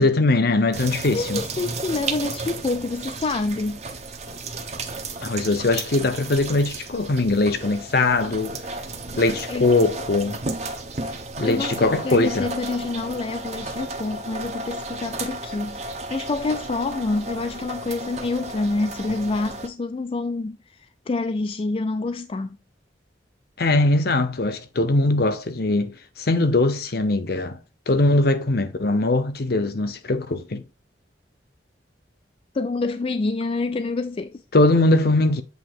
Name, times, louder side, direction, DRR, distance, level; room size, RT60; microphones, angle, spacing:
voice 1, 0.0-1.4 5.2-8.6 9.2-10.4 11.4-12.5 23.6-27.6 27.9-30.6 34.5-35.4, left 2 dB, 60° left, 0.8 m, -21 dB
sound 1, 0.7-19.7, right 3 dB, 40° right, 0.9 m, -33 dB
voice 2, 1.1-3.8 9.5-9.8 11.4-22.6 32.5-34.4, left 3 dB, 30° left, 0.3 m, -27 dB
7.9 x 2.9 x 4.4 m
head